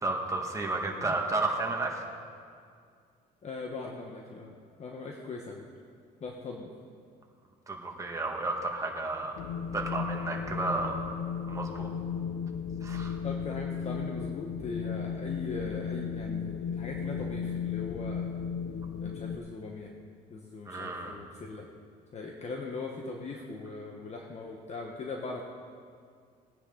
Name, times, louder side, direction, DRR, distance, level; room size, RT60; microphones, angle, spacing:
voice 1, 0.0-2.0 7.7-9.4 9.7-11.1 11.5-11.9 12.8-13.2 20.7-21.2, right 2 dB, 20° right, 0 dB, 1.9 m, -32 dB
voice 2, 3.4-5.6 6.2-6.7 13.2-18.3 19.0-19.9 20.3-21.7 22.1-25.4, left 3 dB, 40° left, 1 dB, 1.2 m, -40 dB
Wind, 9.4-19.4, left 6 dB, 65° left, 0.7 m, -35 dB
19.5 x 9.8 x 3.9 m, 2.2 s
cardioid pair, 110°, 17 cm